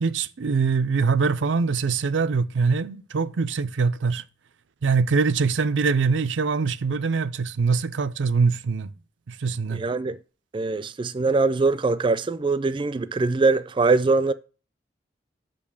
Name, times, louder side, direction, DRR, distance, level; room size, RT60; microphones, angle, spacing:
voice 1, 0.0-4.2 4.8-8.9 9.3-9.8, right 4 dB, 90° right, 0.5 m, -23 dB
voice 2, 9.7-10.2 10.5-14.3, right 3 dB, 25° right, 0.3 m, -22 dB
6.6 x 5.3 x 6.9 m
head